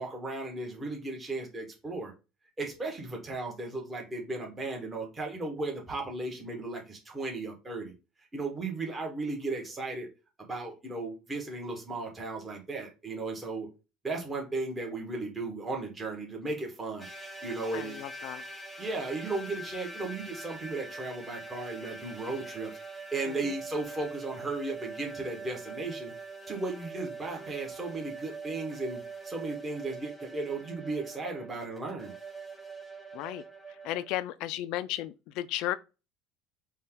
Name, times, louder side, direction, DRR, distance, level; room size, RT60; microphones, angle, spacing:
voice 1, 0.0-2.1 2.6-7.9 8.3-10.1 10.4-13.7 14.0-17.1 17.4-18.0 18.8-22.7 23.1-26.1 26.5-32.1, right 3 dB, 20° right, 1.3 m, -35 dB
sound 1, 17.0-34.1, right 3 dB, 5° left, 1.1 m, -43 dB
voice 2, 17.7-18.4 23.3-23.5 33.1-33.4 33.8-35.8, left 14 dB, 70° left, 0.3 m, -34 dB
4.1 x 2.3 x 3.7 m
supercardioid pair, 110°, 0 cm